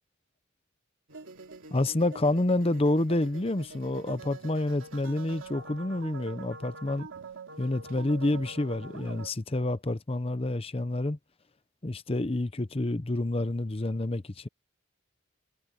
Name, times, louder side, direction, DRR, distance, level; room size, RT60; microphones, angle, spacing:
sound 1, 1.1-9.3, right 3 dB, 70° right, 2.8 m, -45 dB
voice 1, 1.7-7.1 7.6-11.2 11.8-14.5, left 2 dB, 25° left, 0.7 m, -28 dB
head